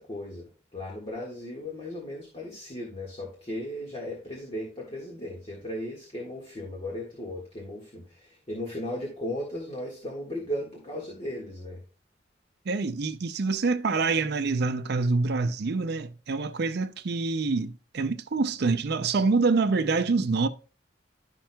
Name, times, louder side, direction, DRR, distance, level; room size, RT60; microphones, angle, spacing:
voice 1, 0.0-11.8, left 1 dB, 30° left, 1.6 m, -36 dB
voice 2, 12.7-20.5, right 4 dB, 55° right, 0.5 m, -26 dB
11.5 x 5.9 x 2.2 m
head